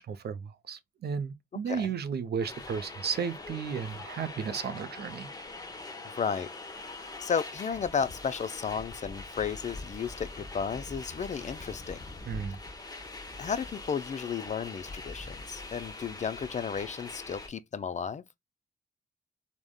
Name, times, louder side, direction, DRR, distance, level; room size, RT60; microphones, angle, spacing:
voice 1, 0.0-5.3 12.3-12.6, right 6 dB, 55° right, 0.5 m, -34 dB
sound 1, 2.4-17.5, left 2 dB, 20° left, 0.7 m, -43 dB
voice 2, 6.1-6.5 7.0-12.0 13.4-18.2, left 6 dB, 40° left, 0.4 m, -33 dB
3.4 x 2.1 x 2.2 m
cardioid pair, 60°, 20 cm